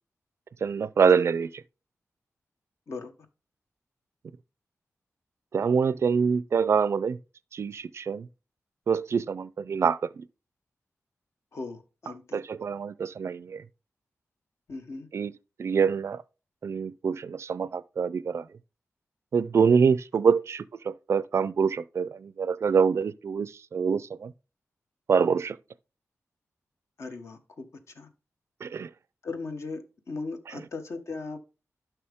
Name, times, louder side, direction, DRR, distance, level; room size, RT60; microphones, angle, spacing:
voice 1, 0.6-1.6 5.5-7.2 7.5-8.3 8.9-10.2 12.3-13.6 15.1-15.3 15.6-16.2 16.6-18.5 19.3-24.3 25.1-25.6 28.6-28.9, right 6 dB, 55° right, 0.4 m, -25 dB
voice 2, 11.5-12.4 14.7-15.1 27.0-27.7 27.9-28.1 29.2-31.4, left 3 dB, 60° left, 1.2 m, -38 dB
11.5 x 5.9 x 3.5 m
wide cardioid pair, 125°, 5 cm